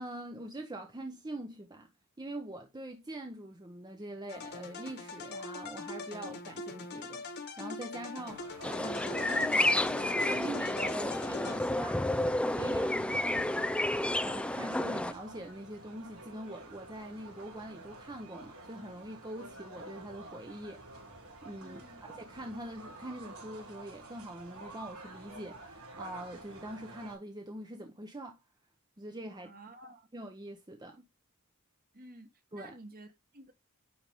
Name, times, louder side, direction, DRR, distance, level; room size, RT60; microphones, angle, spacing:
voice 1, 0.0-1.9 2.2-8.4 8.8-9.9 10.2-12.0 12.5-12.9 14.2-20.8 21.4-21.8 22.1-28.4 29.0-29.5 30.1-31.1 32.5-32.8, right 1 dB, 20° right, 0.8 m, -43 dB
sound 1, 4.3-12.0, left 4 dB, 50° left, 1.5 m, -43 dB
sound 2, 8.3-27.1, right 2 dB, 70° right, 3.7 m, -50 dB
sound 3, 8.6-15.1, left 1 dB, 5° left, 0.4 m, -30 dB
voice 2, 12.8-13.1 21.6-22.0 29.4-30.1 31.9-33.5, right 1 dB, 40° right, 1.5 m, -52 dB
9.6 x 3.9 x 3.5 m
head